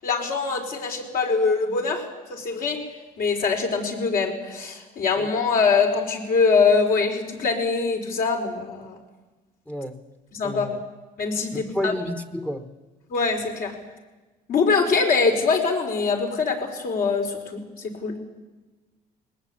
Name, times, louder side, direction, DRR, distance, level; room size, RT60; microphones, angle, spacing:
voice 1, 0.0-2.8 3.2-9.0 10.3-10.7 11.2-11.9 13.1-13.7 14.5-17.6 18.0-18.2, left 4 dB, 60° left, 3 dB, 4.6 m, -23 dB
voice 2, 9.7-10.0 10.4-10.8 11.5-12.7, left 1 dB, 5° left, 7 dB, 1.2 m, -30 dB
21.5 x 19.5 x 8.6 m, 1.2 s
cardioid pair, 110°, 17 cm